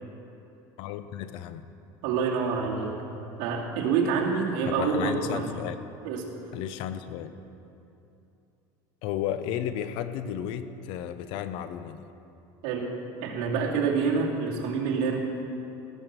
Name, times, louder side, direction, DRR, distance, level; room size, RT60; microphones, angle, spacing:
voice 1, 0.8-1.7 4.6-5.8 6.5-7.3 9.0-12.1, left 10 dB, 60° left, 11 dB, 0.7 m, -33 dB
voice 2, 2.0-2.9 3.4-5.5 6.0-6.3 12.6-13.0 13.2-15.2, right 5 dB, 70° right, -3 dB, 2.5 m, -27 dB
17.5 x 7.3 x 6.8 m, 2.8 s
cardioid pair, 155°, 10 cm